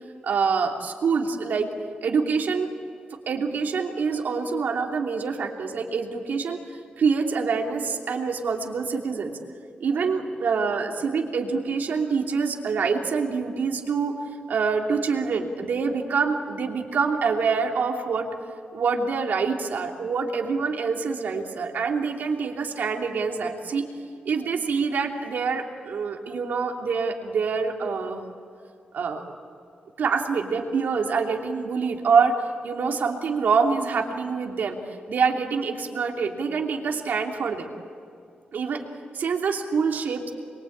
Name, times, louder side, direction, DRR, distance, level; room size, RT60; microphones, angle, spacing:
voice 1, 0.2-1.7 2.0-2.7 3.3-6.6 7.0-9.4 9.8-18.3 18.7-23.9 24.2-28.2 28.9-29.2 30.0-32.4 32.6-34.8 35.1-37.7 38.5-38.8 39.1-40.3, right 5 dB, 70° right, 1 dB, 2.9 m, -25 dB
27.0 x 23.0 x 8.7 m, 2.4 s
wide cardioid pair, 130°, 3 cm